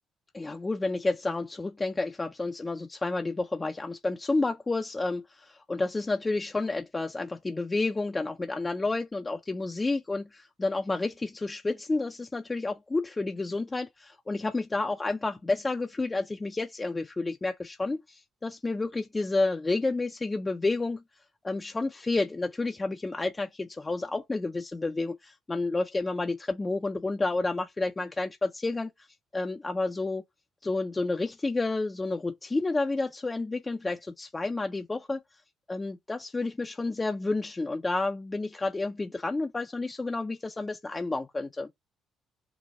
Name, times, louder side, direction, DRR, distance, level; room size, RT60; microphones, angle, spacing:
voice 1, 0.3-21.0 21.4-28.9 29.3-30.2 30.6-35.2 35.7-41.7, left 3 dB, 20° left, 0.4 m, -30 dB
4.0 x 2.2 x 3.4 m
cardioid pair, 105°, 0 cm